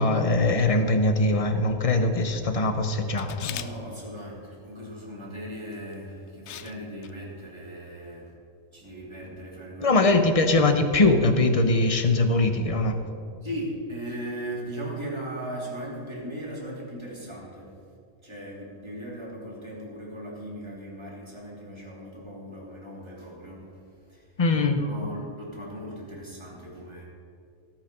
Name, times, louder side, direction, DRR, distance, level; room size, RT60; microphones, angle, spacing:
voice 1, 0.0-3.5 9.8-13.0 24.4-24.8, left 2 dB, 30° left, 7 dB, 0.7 m, -22 dB
Camera, 3.2-3.7 5.7-5.9 6.5-6.7 7.0-7.1, left 10 dB, 65° left, 0.8 m, -37 dB
voice 2, 3.4-8.3 8.7-10.0 13.4-17.8 18.2-24.3 24.7-27.0, right 1 dB, 20° right, -5 dB, 2.9 m, -38 dB
17.5 x 5.9 x 5.3 m, 2.4 s
omnidirectional pair, 1.4 m